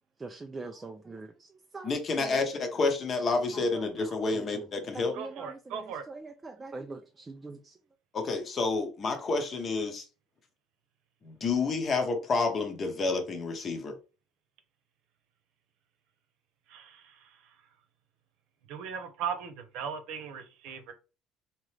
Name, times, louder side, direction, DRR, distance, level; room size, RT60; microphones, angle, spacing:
voice 1, 0.2-1.5 1.7-2.4 3.7-3.8 4.3-4.7 4.9-7.7, right 3 dB, 15° right, 0.4 m, -43 dB
voice 2, 1.8-5.2 8.1-10.0 11.2-13.9, left 3 dB, 30° left, 0.8 m, -29 dB
voice 3, 5.1-6.1 16.7-17.0 18.7-20.9, right 7 dB, 70° right, 0.9 m, -37 dB
3.7 x 2.9 x 3.3 m
cardioid pair, 155°, 0 cm